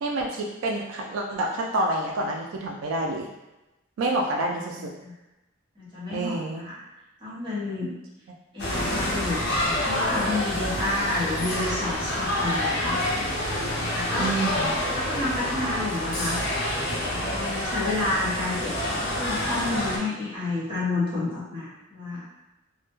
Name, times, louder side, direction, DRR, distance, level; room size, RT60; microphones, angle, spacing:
voice 1, 0.0-3.3 4.0-4.9 6.1-6.6 14.2-14.7, right 2 dB, 85° right, 0 dB, 0.3 m, -28 dB
voice 2, 4.7-5.1 5.8-6.7 7.2-7.9 8.5-13.0 13.7-14.4 14.9-16.4 17.1-22.2, left 2 dB, 25° right, -9 dB, 0.9 m, -30 dB
sound 1, 8.6-20.0, left 1 dB, 55° left, 0.5 m, -27 dB
2.1 x 2.1 x 2.9 m, 1.0 s
head